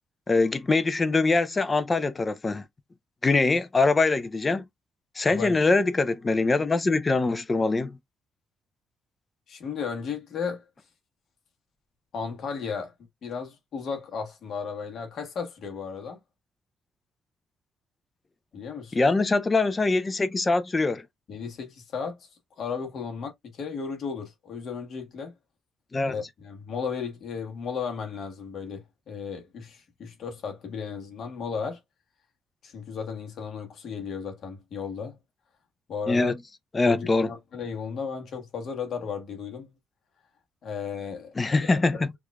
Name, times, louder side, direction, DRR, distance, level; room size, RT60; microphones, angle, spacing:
voice 1, 0.3-2.6 3.2-4.6 5.2-8.0 18.9-21.0 25.9-26.1 36.1-36.3 36.7-37.3 41.4-42.0, left 3 dB, 20° left, 0.4 m, -23 dB
voice 2, 9.5-10.6 12.1-12.9 13.2-16.2 18.5-19.0 21.3-22.3 22.6-25.3 26.0-31.8 32.6-35.2 35.9-36.4 36.8-39.7 40.6-42.0, left 6 dB, 55° left, 1.1 m, -35 dB
4.7 x 2.4 x 2.2 m
cardioid pair, 155°, 0 cm